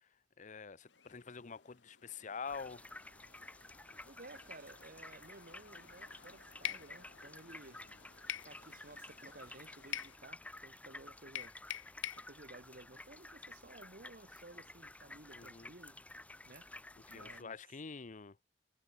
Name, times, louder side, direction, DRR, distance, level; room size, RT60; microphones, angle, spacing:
voice 1, 0.4-2.8 15.3-15.7 17.1-18.4, left 5 dB, 40° left, 0.7 m, -46 dB
sound 1, 0.9-10.2, left 4 dB, 70° left, 2.0 m, -64 dB
sound 2, 2.5-17.4, left 2 dB, 10° left, 0.5 m, -53 dB
voice 2, 4.1-7.8 8.4-11.6 12.2-16.0 16.5-16.7 17.1-17.6, right 2 dB, 50° right, 1.8 m, -56 dB
sound 3, 6.6-6.9 8.3-8.5 9.9-10.1 11.3-12.2, left 12 dB, 85° left, 0.5 m, -40 dB
head